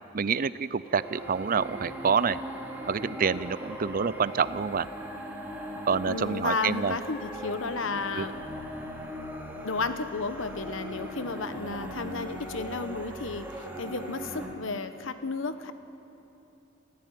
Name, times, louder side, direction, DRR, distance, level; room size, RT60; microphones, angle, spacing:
voice 1, 0.1-2.4 2.9-4.9 5.9-7.0 8.1-8.3, right 6 dB, 45° right, 17 dB, 0.5 m, -27 dB
sound 1, 0.8-14.5, equal, 10° right, 2.8 m, -39 dB
voice 2, 6.1-8.3 9.6-15.7, left 4 dB, 80° left, 10 dB, 1.1 m, -33 dB
27.5 x 14.5 x 9.3 m, 2.9 s
head